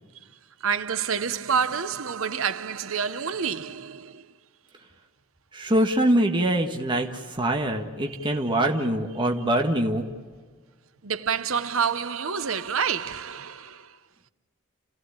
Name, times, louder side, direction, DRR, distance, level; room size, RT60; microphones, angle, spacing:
voice 1, 0.6-4.3 8.1-8.4 11.0-14.0, right 6 dB, 85° right, 0.9 m, -28 dB
voice 2, 5.5-10.1, right 1 dB, 25° right, 1.6 m, -24 dB
29.5 x 15.5 x 8.9 m
head